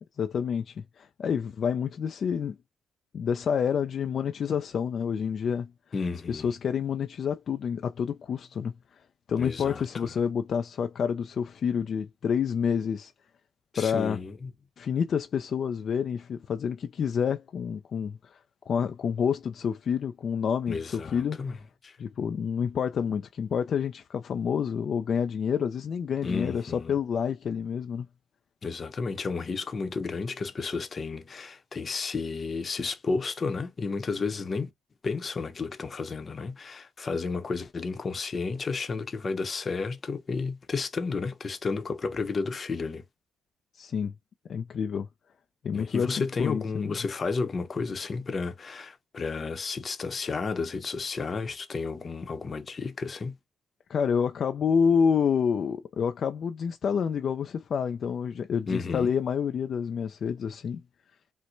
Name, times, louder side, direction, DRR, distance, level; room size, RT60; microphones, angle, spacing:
voice 1, 0.2-2.6 3.1-5.7 6.3-9.0 9.3-13.1 13.8-14.2 14.8-18.4 18.7-21.6 22.0-28.1 43.7-44.1 44.5-45.1 45.6-46.9 53.9-60.8, left 7 dB, 55° left, 0.3 m, -28 dB
voice 2, 5.9-6.5 9.4-10.1 13.7-14.5 20.7-21.6 21.8-22.0 26.2-27.0 28.6-34.7 35.0-43.0 45.7-53.4 58.7-59.1, left 4 dB, 40° left, 0.7 m, -32 dB
4.3 x 2.1 x 2.5 m
cardioid pair, 90°, 0 cm